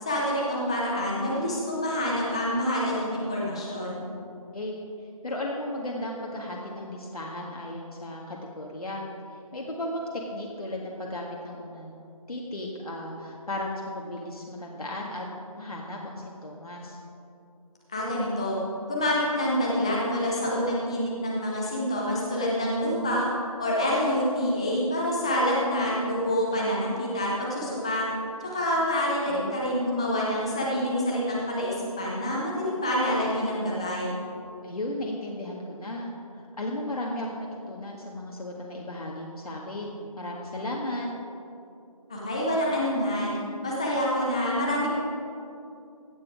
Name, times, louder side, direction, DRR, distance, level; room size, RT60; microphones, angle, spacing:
voice 1, 0.0-4.0 17.9-18.6 18.9-23.3 23.6-28.1 28.5-34.2 42.1-43.4 43.6-44.9, equal, 10° left, -4 dB, 0.7 m, -27 dB
voice 2, 4.5-9.0 9.5-11.9 12.3-15.3 15.5-17.0 29.3-29.6 34.6-41.1, left 1 dB, 80° left, -2 dB, 1.8 m, -35 dB
16.0 x 7.5 x 4.8 m, 2.6 s
figure-of-eight pair, 170°, 19 cm